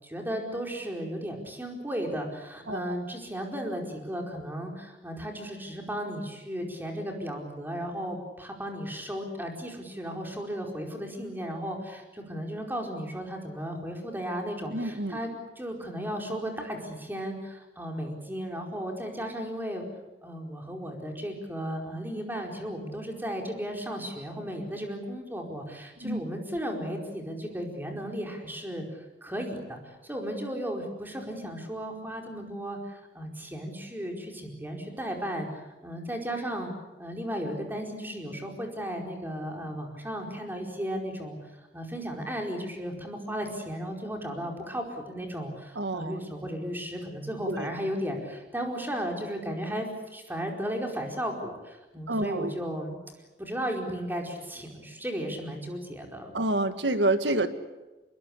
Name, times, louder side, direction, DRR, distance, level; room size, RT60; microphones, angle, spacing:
voice 1, 0.0-19.8 20.2-36.7 37.0-41.4 41.7-53.0 53.4-56.4, equal, 10° right, 2 dB, 4.8 m, -35 dB
voice 2, 2.7-3.0 14.7-15.2 26.0-26.2 45.8-46.2 47.5-47.7 52.1-52.5 56.3-57.5, right 2 dB, 85° right, 10 dB, 1.8 m, -28 dB
25.5 x 22.5 x 8.4 m, 1.1 s
head